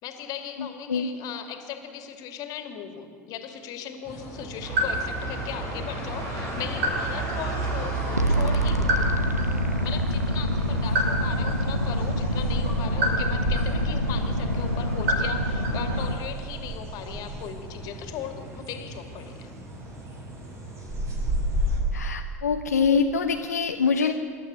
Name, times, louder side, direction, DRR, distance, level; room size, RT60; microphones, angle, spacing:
voice 1, 0.0-8.9 9.8-19.5, left 9 dB, 45° left, 6 dB, 2.4 m, -38 dB
sound 1, 4.0-21.8, equal, 35° right, 5.7 m, -35 dB
sound 2, 4.6-16.1, right 1 dB, 60° right, 7.0 m, -30 dB
sound 3, 8.2-16.2, equal, 90° right, 1.0 m, -26 dB
voice 2, 21.9-24.1, left 5 dB, 80° left, 4 dB, 0.9 m, -24 dB
26.0 x 12.0 x 8.6 m, 2.2 s
figure-of-eight pair, 75°, 9 cm